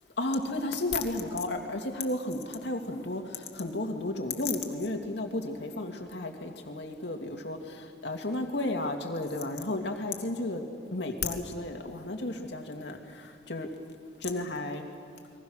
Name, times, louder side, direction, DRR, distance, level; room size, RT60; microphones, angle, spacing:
voice 1, 0.2-10.6 10.9-13.7 14.2-14.9, left 2 dB, 75° left, 3 dB, 2.5 m, -33 dB
29.5 x 22.5 x 6.5 m, 2.3 s
head